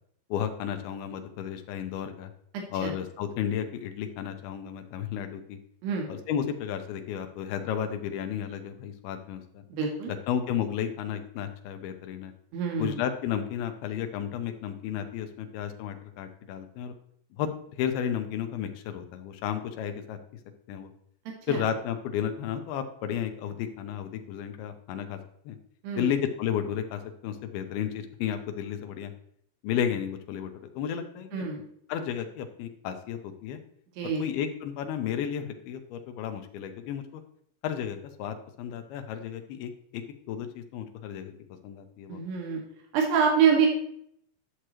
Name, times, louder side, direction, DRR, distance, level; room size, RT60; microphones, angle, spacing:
voice 1, 0.3-2.3 2.7-5.6 6.1-9.6 10.1-12.3 12.8-16.9 17.3-20.2 20.7-20.9 21.5-25.2 25.5-25.6 25.9-29.1 29.6-31.5 31.9-33.6 34.0-37.2 37.6-41.3 41.6-42.2, left 9 dB, 80° left, 7 dB, 2.6 m, -33 dB
voice 2, 2.5-2.9 5.8-6.1 9.7-10.1 12.5-13.0 21.5-21.6 25.8-26.1 31.3-31.6 34.0-34.2 42.1-42.6 42.9-43.7, right 6 dB, 80° right, 1 dB, 3.2 m, -26 dB
11.0 x 6.5 x 3.0 m, 0.69 s
omnidirectional pair, 4.7 m